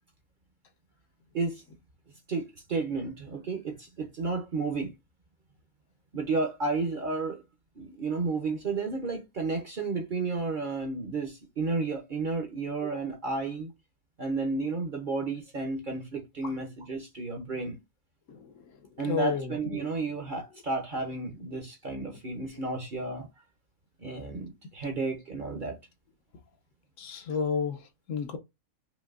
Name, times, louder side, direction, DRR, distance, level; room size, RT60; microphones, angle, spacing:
voice 1, 2.3-4.9 6.1-7.4 7.8-13.7 14.2-17.8 19.0-23.3 24.0-25.8, right 3 dB, 45° right, 0.7 m, -32 dB
voice 2, 19.0-19.6 27.0-27.8 28.1-28.4, left 6 dB, 70° left, 1.1 m, -31 dB
5.2 x 2.6 x 2.4 m
omnidirectional pair, 1.4 m